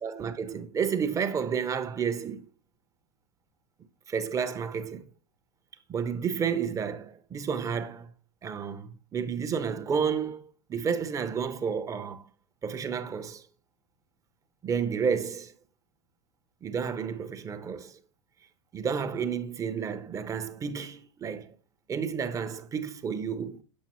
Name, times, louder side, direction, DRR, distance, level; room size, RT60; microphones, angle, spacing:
voice 1, 0.0-2.5 4.1-5.0 5.9-8.1 8.4-12.3 12.6-13.4 14.6-15.5 16.6-18.0 18.7-21.5 21.9-23.6, right 6 dB, 20° right, 0.7 m, -31 dB
7.3 x 5.3 x 3.0 m
hypercardioid pair, 105°, 14 cm